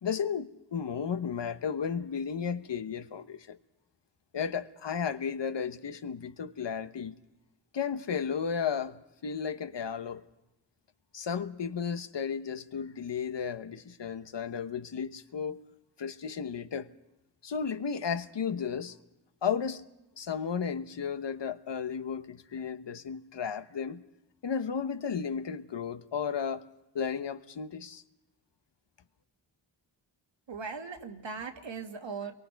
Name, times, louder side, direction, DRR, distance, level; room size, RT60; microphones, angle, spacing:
voice 1, 0.0-3.6 4.3-7.1 7.7-10.2 11.1-15.6 16.0-16.9 17.4-19.0 19.4-19.8 20.2-24.0 24.4-26.6 26.9-28.0, left 6 dB, 70° left, 1.1 m, -34 dB
voice 2, 30.5-32.3, right 5 dB, 80° right, 2.1 m, -39 dB
29.5 x 23.5 x 4.7 m
wide cardioid pair, 60°, 44 cm